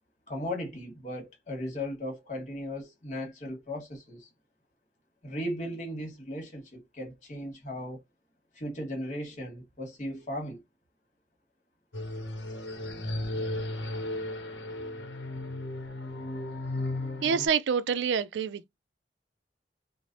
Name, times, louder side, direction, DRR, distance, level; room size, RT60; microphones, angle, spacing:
voice 1, 0.3-4.3 5.2-8.0 8.5-10.6, left 1 dB, 45° left, 1.3 m, -37 dB
sound 1, 11.9-17.5, left 1 dB, 75° left, 0.8 m, -35 dB
voice 2, 17.2-18.7, right 6 dB, 85° right, 0.3 m, -27 dB
3.1 x 2.0 x 2.6 m
head